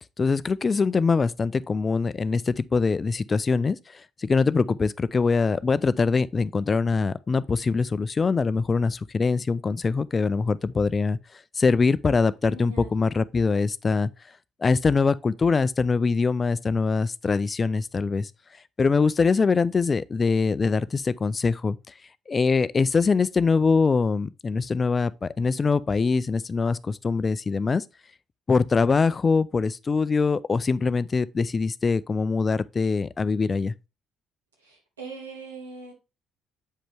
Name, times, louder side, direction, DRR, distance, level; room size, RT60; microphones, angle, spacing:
voice 1, 0.2-11.2 11.5-14.1 14.6-18.3 18.8-21.9 22.3-27.8 28.5-33.7, left 4 dB, 35° left, 0.4 m, -23 dB
voice 2, 12.5-12.9 34.6-35.9, right 3 dB, 85° right, 1.9 m, -41 dB
7.6 x 5.1 x 3.4 m
figure-of-eight pair, 50°, 0 cm